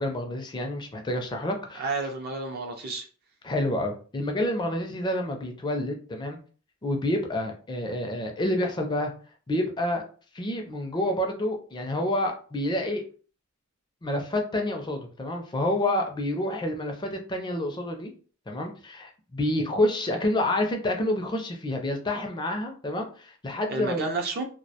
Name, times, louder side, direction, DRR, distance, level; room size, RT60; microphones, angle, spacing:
voice 1, 0.0-1.9 3.4-6.4 6.8-9.1 9.5-10.0 10.3-13.0 14.0-18.1 18.5-24.0, left 1 dB, 20° left, 3 dB, 0.4 m, -28 dB
voice 2, 1.8-3.1 23.7-24.4, right 3 dB, 45° right, 3 dB, 0.4 m, -30 dB
2.2 x 2.1 x 2.7 m, 0.40 s
head